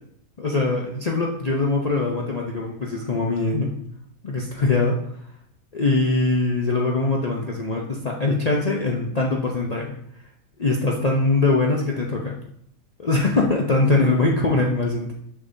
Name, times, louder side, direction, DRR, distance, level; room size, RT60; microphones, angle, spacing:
voice 1, 0.4-3.7 4.2-5.0 5.7-9.9 10.6-12.4 13.0-15.1, left 3 dB, 50° left, -1 dB, 0.5 m, -22 dB
6.7 x 5.7 x 2.6 m, 0.68 s
omnidirectional pair, 1.5 m